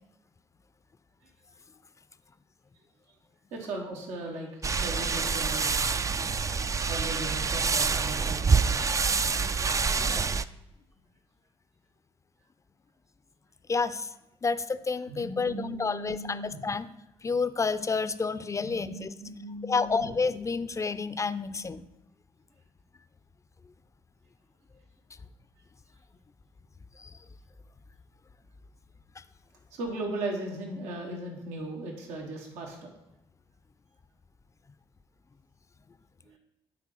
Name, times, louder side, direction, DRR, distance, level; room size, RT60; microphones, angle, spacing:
voice 1, 3.5-5.9 6.9-8.7 15.1-16.6 18.6-20.1 29.7-32.9 36.2-36.4, right 2 dB, 85° right, 1 dB, 1.3 m, -37 dB
sound 1, 4.6-10.4, right 5 dB, 30° right, 0.3 m, -26 dB
voice 2, 13.7-14.1 14.4-16.9 17.2-19.1 19.6-21.9 27.0-27.2 29.2-29.3, left 4 dB, 25° left, 14 dB, 0.5 m, -30 dB
8.4 x 4.1 x 5.5 m, 0.90 s
supercardioid pair, 60°, 12 cm